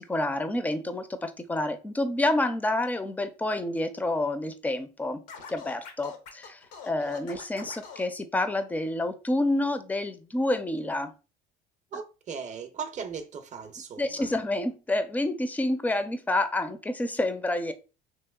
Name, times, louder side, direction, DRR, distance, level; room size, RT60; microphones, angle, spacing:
voice 1, 0.0-11.1 14.0-17.7, left 1 dB, 10° left, 0.4 m, -28 dB
Scratching (performance technique), 5.3-8.1, left 6 dB, 85° left, 0.7 m, -44 dB
voice 2, 11.9-14.3, right 6 dB, 40° right, 0.6 m, -38 dB
3.0 x 2.8 x 2.2 m
supercardioid pair, 95°, 18 cm